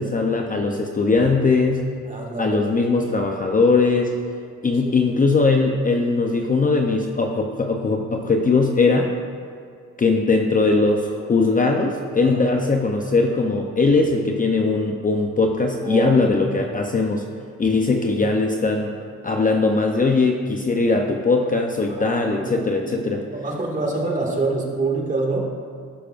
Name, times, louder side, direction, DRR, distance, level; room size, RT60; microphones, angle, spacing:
voice 1, 0.0-1.9 2.4-4.1 4.6-9.1 10.0-17.2 17.6-18.9 19.2-23.2, left 3 dB, 25° left, 2 dB, 0.7 m, -20 dB
voice 2, 2.0-2.6 4.8-5.0 12.2-12.4 15.8-16.7 21.9-25.4, right 3 dB, 25° right, -1 dB, 2.1 m, -27 dB
16.5 x 6.5 x 2.5 m, 2.3 s
cardioid pair, 90°, 30 cm